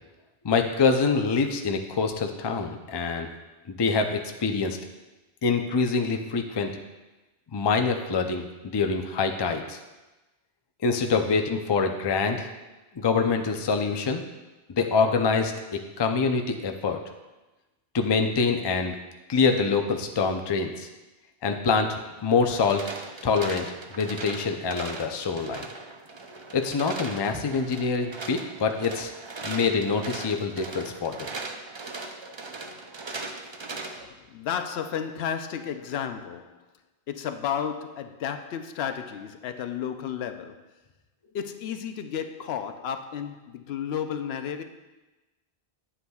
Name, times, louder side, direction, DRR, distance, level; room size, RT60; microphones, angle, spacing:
voice 1, 0.4-3.3 3.7-4.8 5.4-6.7 7.5-9.8 10.8-12.5 12.9-14.2 14.7-17.0 17.9-19.0 19.3-20.9 21.4-22.0 22.2-22.9 23.2-25.7 26.5-29.1 29.4-31.3, left 4 dB, 35° left, 4 dB, 0.4 m, -25 dB
sound 1, 22.4-34.1, right 3 dB, 35° right, 0.5 m, -39 dB
voice 2, 34.0-36.7 37.1-40.7 41.3-44.6, left 8 dB, 75° left, 8 dB, 0.8 m, -32 dB
9.7 x 7.9 x 2.3 m, 1.1 s
omnidirectional pair, 1.1 m